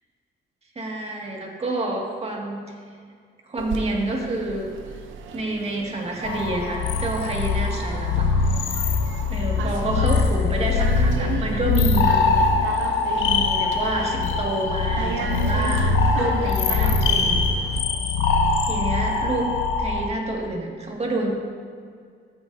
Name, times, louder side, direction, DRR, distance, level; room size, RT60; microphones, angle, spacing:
voice 1, 0.8-2.6 3.5-4.8 5.3-8.3 8.6-8.9 9.3-12.3 13.1-17.4 18.7-19.5 19.8-21.3, right 2 dB, 30° right, -1 dB, 2.0 m, -28 dB
sound 1, 3.6-17.8, right 5 dB, 75° right, 0.7 m, -35 dB
sound 2, 6.2-20.1, left 4 dB, 80° left, 0.9 m, -22 dB
13.5 x 9.5 x 2.7 m, 2.1 s
cardioid pair, 90°, 20 cm